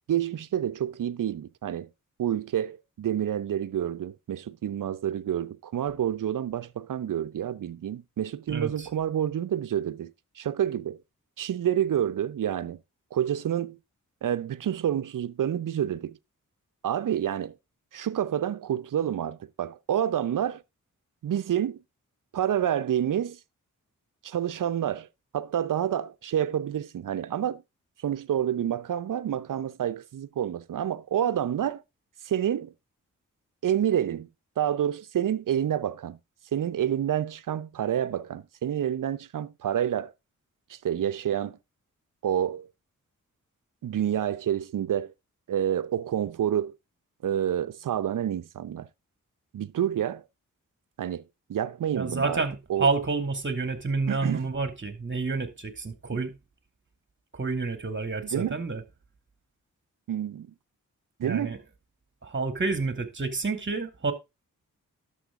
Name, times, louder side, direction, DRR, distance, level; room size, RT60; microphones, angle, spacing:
voice 1, 0.1-1.9 2.2-11.0 11.4-12.8 13.1-13.8 14.2-16.2 16.8-17.5 17.9-20.6 21.2-21.8 22.3-23.4 24.2-25.1 25.3-27.6 28.0-31.8 32.2-32.7 33.6-34.3 34.6-36.2 36.5-40.1 40.7-41.6 42.2-42.7 43.8-45.1 45.5-46.8 47.2-48.9 49.5-50.2 51.0-51.2 51.5-52.4 52.7-52.9 54.1-54.5 56.1-56.2 58.2-58.6 60.1-60.5 61.2-61.6, right 10 dB, 70° right, 0.7 m, -28 dB
voice 2, 8.5-8.9 51.9-56.3 57.3-58.8 61.2-61.6 62.2-64.1, right 3 dB, 35° right, 2.5 m, -29 dB
11.5 x 7.2 x 3.6 m
cardioid pair, 55°, 33 cm